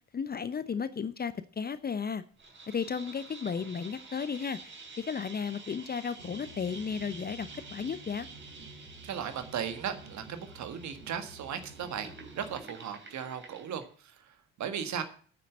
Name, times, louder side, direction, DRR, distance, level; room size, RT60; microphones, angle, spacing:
voice 1, 0.1-2.2 2.7-4.6 5.0-8.3, left 6 dB, 25° left, 0.7 m, -34 dB
sound 1, 2.4-13.9, right 3 dB, 30° right, 3.1 m, -49 dB
sound 2, 6.2-12.6, right 2 dB, 85° right, 1.9 m, -51 dB
voice 2, 9.0-12.1 12.4-15.0, right 8 dB, 50° right, 1.7 m, -37 dB
9.4 x 6.8 x 7.7 m
figure-of-eight pair, 50°, 37 cm